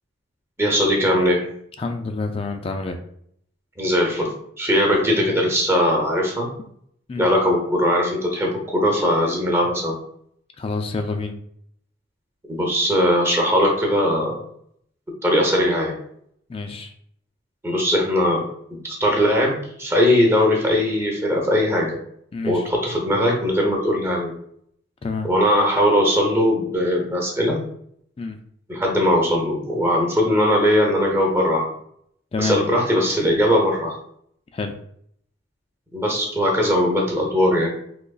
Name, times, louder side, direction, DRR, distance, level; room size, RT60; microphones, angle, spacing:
voice 1, 0.6-1.4 3.8-6.5 7.2-10.0 12.5-14.4 15.2-16.0 17.6-18.5 18.8-22.0 22.4-24.3 25.2-27.6 28.7-31.7 32.4-34.0 35.9-37.7, equal, 15° right, -1 dB, 0.7 m, -20 dB
voice 2, 1.8-3.0 7.1-7.2 10.6-11.3 16.5-16.9 22.3-22.6 25.0-25.3 28.2-28.4 32.3-32.6 34.5-34.7, left 3 dB, 30° left, 6 dB, 0.3 m, -27 dB
3.8 x 2.9 x 2.3 m, 0.68 s
head